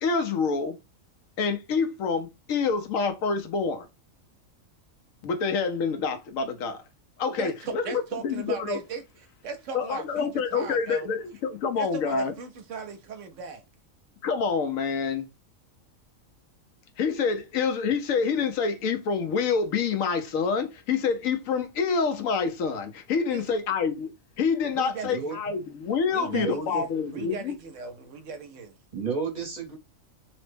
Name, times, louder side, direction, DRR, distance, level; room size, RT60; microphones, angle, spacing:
voice 1, 0.0-0.8 1.4-3.9 5.2-6.8 7.2-8.8 9.7-12.3 14.2-15.2 17.0-24.1 24.4-27.5, left 5 dB, 80° left, 1.1 m, -27 dB
voice 2, 7.4-11.2 11.8-13.6 23.3-23.5 24.6-25.4 26.1-28.8, right 5 dB, 70° right, 0.9 m, -38 dB
voice 3, 25.0-25.5 26.2-26.8 27.1-27.3 28.9-29.8, right 5 dB, 35° right, 0.8 m, -32 dB
3.0 x 2.1 x 3.1 m
omnidirectional pair, 1.4 m